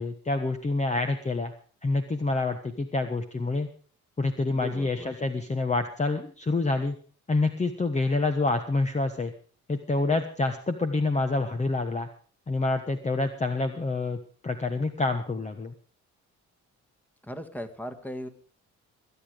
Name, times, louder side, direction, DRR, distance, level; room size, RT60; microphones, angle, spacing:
voice 1, 0.0-1.5 1.8-3.7 4.2-7.0 7.3-9.3 9.7-12.1 12.5-14.2 14.4-15.7, left 3 dB, 25° left, 7 dB, 1.3 m, -27 dB
voice 2, 4.5-5.1 17.2-18.3, equal, 5° left, 8 dB, 2.0 m, -37 dB
21.5 x 9.3 x 5.1 m, 0.42 s
cardioid pair, 90°, 30 cm